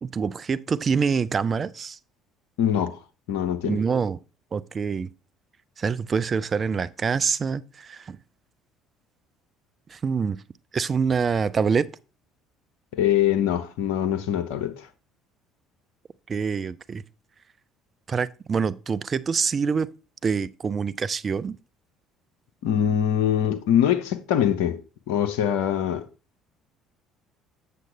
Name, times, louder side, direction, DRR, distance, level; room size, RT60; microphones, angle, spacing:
voice 1, 0.0-2.0 3.6-4.2 4.5-5.1 5.8-8.2 9.9-10.4 10.7-11.9 16.3-17.0 18.1-19.9 20.2-21.6, right 5 dB, 35° right, 0.4 m, -25 dB
voice 2, 2.6-3.0 3.3-3.8 12.9-14.9 22.6-24.8 25.1-26.1, left 10 dB, 70° left, 0.7 m, -23 dB
7.6 x 6.6 x 3.3 m
hypercardioid pair, 55°, 0 cm